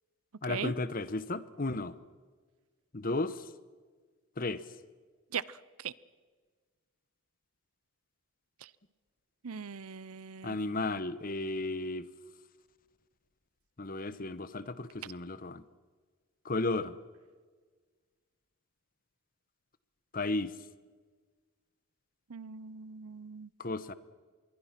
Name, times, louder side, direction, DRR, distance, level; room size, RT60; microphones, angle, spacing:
voice 1, 0.4-1.9 2.9-3.3 4.4-4.6 10.4-12.1 13.8-15.6 16.4-16.9 20.1-20.5 23.6-23.9, left 2 dB, 40° left, 15 dB, 1.0 m, -34 dB
voice 2, 5.3-5.9 8.6-8.7 9.4-10.6 22.3-23.5, right 6 dB, 85° right, 20 dB, 0.7 m, -40 dB
26.0 x 22.0 x 6.0 m, 1.5 s
head